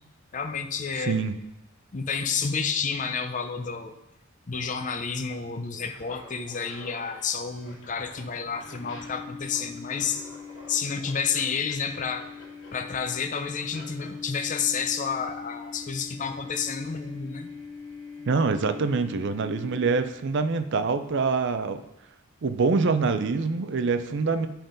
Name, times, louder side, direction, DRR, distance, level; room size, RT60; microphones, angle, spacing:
voice 1, 0.3-1.2 1.9-4.0 4.5-10.3 10.7-12.3 12.7-17.5 18.2-18.3, left 6 dB, 40° left, 7 dB, 0.6 m, -30 dB
voice 2, 1.0-1.4 18.3-21.8 22.4-24.5, right 4 dB, 60° right, 10 dB, 0.5 m, -25 dB
Laughter, 5.8-14.2, left 2 dB, 65° left, 2.2 m, -49 dB
sound 1, 6.3-20.3, left 5 dB, 85° left, 1.7 m, -43 dB
10.0 x 3.9 x 5.1 m, 0.89 s
head